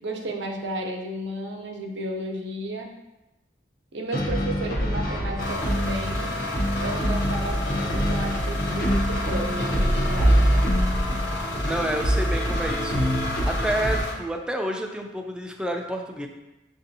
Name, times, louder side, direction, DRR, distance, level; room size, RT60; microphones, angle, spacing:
voice 1, 0.0-2.9 3.9-6.3 6.8-10.5, right 1 dB, 75° right, 1 dB, 0.7 m, -33 dB
sound 1, 4.1-14.0, equal, 55° left, 0.7 m, -24 dB
sound 2, 5.4-14.1, left 2 dB, 85° left, 0.8 m, -33 dB
voice 2, 11.6-16.3, right 1 dB, 5° right, 3 dB, 0.3 m, -29 dB
6.7 x 2.6 x 2.7 m, 0.99 s
head